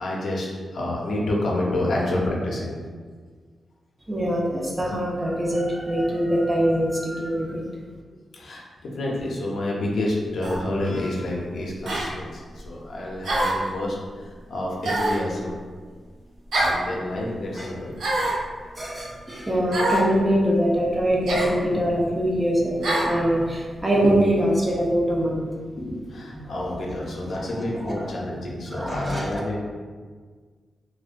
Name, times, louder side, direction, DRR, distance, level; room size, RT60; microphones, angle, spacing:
voice 1, 0.0-2.8 8.3-15.5 16.6-18.0 25.8-29.6, left 1 dB, 65° left, -3 dB, 0.5 m, -29 dB
voice 2, 4.1-7.6 17.6-17.7 18.8-25.4 26.4-26.7 27.3-27.4 27.9-28.0 28.7-29.4, equal, 15° right, -3 dB, 0.4 m, -23 dB
sound 1, 10.4-10.6 11.9-12.1 13.2-13.7 14.8-15.3 16.5-16.8 18.0-18.4 19.7-20.1 21.3-21.6 22.8-23.1, right 1 dB, 90° right, 0.4 m, -24 dB
2.5 x 2.1 x 2.4 m, 1.6 s
wide cardioid pair, 160°, 0 cm